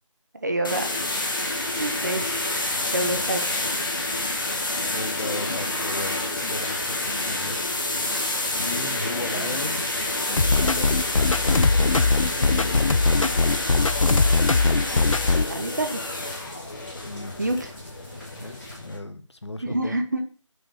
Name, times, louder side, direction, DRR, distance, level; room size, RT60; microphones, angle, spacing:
voice 1, 0.3-0.8 1.4-2.4 2.9-3.5 9.3-9.6 15.5-16.0 17.4-17.7 19.6-20.2, right 1 dB, 35° right, 5 dB, 1.2 m, -27 dB
sound 1, 0.6-19.0, left 2 dB, 40° left, 1.7 m, -28 dB
sound 2, 1.7-18.8, equal, ahead, 2.3 m, -46 dB
voice 2, 3.0-3.3 4.9-7.6 8.5-9.8 10.3-11.0 11.3-12.9 17.0-17.4 18.3-20.0, left 2 dB, 60° left, 10 dB, 1.2 m, -36 dB
sound 3, 10.4-15.4, left 3 dB, 85° left, 0.7 m, -21 dB
6.3 x 5.8 x 7.0 m, 0.40 s
figure-of-eight pair, 175°, 16 cm